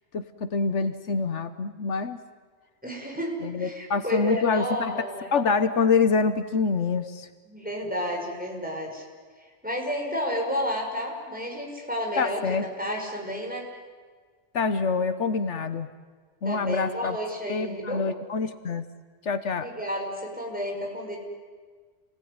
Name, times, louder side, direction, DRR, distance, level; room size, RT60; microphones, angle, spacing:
voice 1, 0.1-2.2 3.4-5.0 5.3-7.3 12.2-12.7 14.5-15.9 16.4-17.2 17.5-18.8 19.2-19.7, left 4 dB, 75° left, 11 dB, 1.4 m, -26 dB
voice 2, 2.8-5.3 7.5-9.0 9.6-13.7 16.4-18.0 19.6-21.2, equal, 5° right, -1 dB, 5.9 m, -31 dB
28.5 x 19.5 x 9.7 m, 1.5 s
omnidirectional pair, 1.2 m